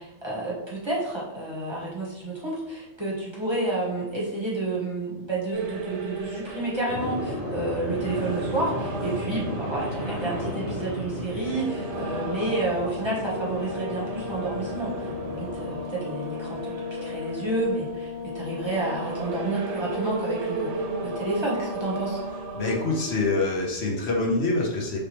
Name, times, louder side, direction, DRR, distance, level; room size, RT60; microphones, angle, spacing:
voice 1, 0.0-16.7 17.0-22.2, right 2 dB, 25° right, -6 dB, 1.0 m, -30 dB
sound 1, 5.5-23.6, right 3 dB, 80° right, 0.9 m, -36 dB
sound 2, 6.9-15.8, left 1 dB, 45° left, 1.1 m, -35 dB
sound 3, 11.4-22.5, left 5 dB, ahead, 1.4 m, -36 dB
voice 2, 22.5-25.0, left 3 dB, 65° left, -1 dB, 1.1 m, -25 dB
4.7 x 3.4 x 2.9 m, 0.89 s
omnidirectional pair, 1.2 m